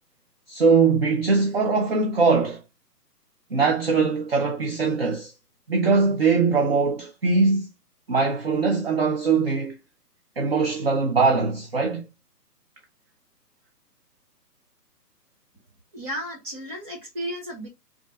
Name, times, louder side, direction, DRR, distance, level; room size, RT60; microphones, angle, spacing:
voice 1, 0.5-2.6 3.5-5.3 5.7-7.7 8.1-9.8 10.4-12.0, right 4 dB, 40° right, 0.4 m, -21 dB
voice 2, 15.9-17.7, equal, 20° right, 1.7 m, -33 dB
3.5 x 2.4 x 3.4 m
hypercardioid pair, 150°, 50 cm